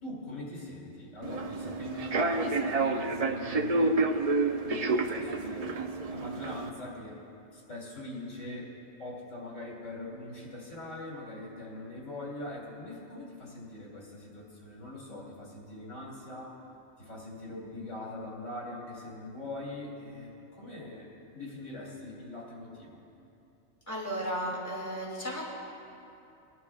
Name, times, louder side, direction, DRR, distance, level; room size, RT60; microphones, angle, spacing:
voice 1, 0.0-4.0 4.6-5.6 6.1-7.1 7.5-8.7 9.0-16.5 17.0-23.0, left 2 dB, 85° left, -4 dB, 2.9 m, -42 dB
Human voice / Subway metro underground, 1.2-6.7, right 3 dB, 45° right, 0.5 m, -29 dB
voice 2, 23.9-25.5, equal, 15° left, -5 dB, 2.6 m, -34 dB
22.0 x 11.0 x 2.4 m, 2.7 s
omnidirectional pair, 1.3 m